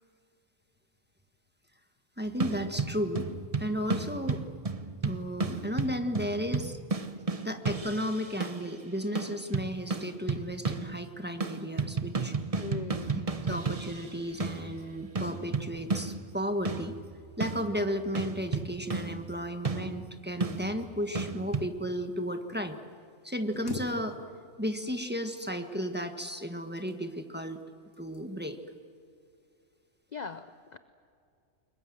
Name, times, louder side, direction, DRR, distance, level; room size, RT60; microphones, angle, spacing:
voice 1, 2.2-3.3 3.6-4.4 5.0-6.8 7.4-12.3 13.5-16.9 17.4-22.8 23.2-24.2 24.6-27.6 28.0-28.6, equal, 10° right, 5 dB, 1.4 m, -34 dB
sound 1, 2.3-8.8 9.1-11.1 11.4-21.7, right 4 dB, 30° right, 1.0 m, -34 dB
voice 2, 12.6-13.2 30.1-30.8, left 4 dB, 40° left, 11 dB, 0.7 m, -40 dB
sound 2, 23.5-24.6 24.9-25.6 26.5-27.3 27.9-28.3 28.7-29.0, left 3 dB, 85° left, 2.6 m, -44 dB
29.5 x 22.0 x 7.8 m, 2.4 s
omnidirectional pair, 1.4 m